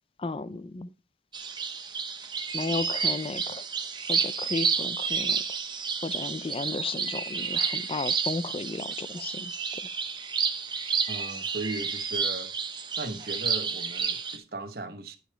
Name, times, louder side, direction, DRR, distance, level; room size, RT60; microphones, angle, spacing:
voice 1, 0.2-0.9 2.5-3.6 4.1-5.4 6.0-9.5, left 3 dB, 30° left, 0.4 m, -34 dB
sound 1, 1.3-14.4, right 6 dB, 25° right, 0.9 m, -30 dB
voice 2, 11.1-12.5 13.0-15.2, right 2 dB, 55° right, 1.1 m, -37 dB
14.0 x 5.1 x 3.2 m
head